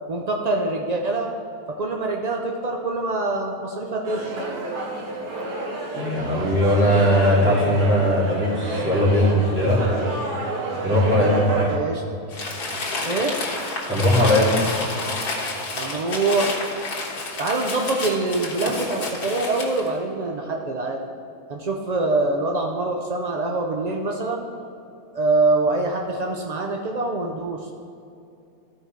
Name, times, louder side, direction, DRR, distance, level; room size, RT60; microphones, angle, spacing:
voice 1, 0.1-1.3 1.7-4.3 11.2-11.4 11.7-12.0 13.0-13.4 15.7-16.6 17.4-21.0 21.5-24.5 25.1-27.7, right 2 dB, 60° right, 1 dB, 0.4 m, -24 dB
sound 1, 4.0-11.8, right 1 dB, 80° right, 1.9 m, -29 dB
voice 2, 5.9-9.8 10.8-11.7 13.9-14.6, equal, 5° right, -7 dB, 2.4 m, -19 dB
Crumpling crinkling, 12.3-19.9, left 2 dB, 75° left, 1.9 m, -29 dB
14.0 x 4.8 x 4.5 m, 2.6 s
omnidirectional pair, 1.6 m